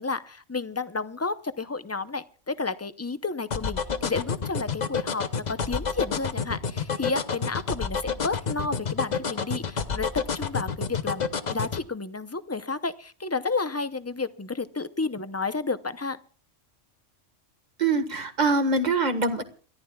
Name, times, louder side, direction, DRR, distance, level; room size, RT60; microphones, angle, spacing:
voice 1, 0.0-16.2, left 4 dB, 20° left, 13 dB, 0.4 m, -31 dB
sound 1, 3.5-11.8, left 6 dB, 40° left, 0.9 m, -28 dB
voice 2, 17.8-19.4, right 3 dB, 35° right, 8 dB, 1.6 m, -24 dB
29.0 x 14.0 x 2.3 m, 0.40 s
omnidirectional pair, 1.2 m